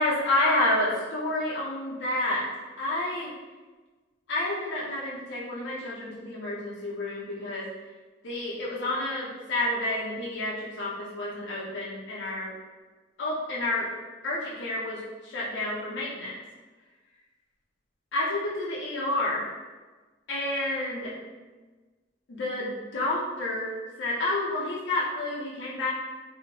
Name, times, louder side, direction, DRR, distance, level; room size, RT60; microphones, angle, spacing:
voice 1, 0.0-2.4 2.8-3.3 4.3-7.7 8.2-12.5 13.2-13.9 14.2-16.3 18.1-19.5 20.3-21.1 22.3-23.7 24.0-25.9, left 1 dB, 75° left, -6 dB, 0.5 m, -29 dB
2.7 x 2.0 x 2.9 m, 1.3 s
head